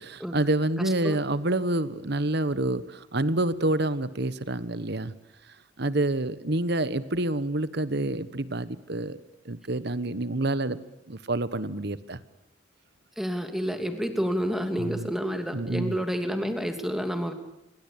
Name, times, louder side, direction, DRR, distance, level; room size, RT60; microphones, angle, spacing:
voice 1, 0.0-5.1 5.8-9.2 9.4-10.8 11.1-12.2 14.8-15.1 15.5-16.0, right 2 dB, 60° right, 15 dB, 1.3 m, -28 dB
voice 2, 0.8-1.2 13.2-17.3, equal, ahead, 6 dB, 2.9 m, -29 dB
29.5 x 23.0 x 8.8 m, 0.86 s
head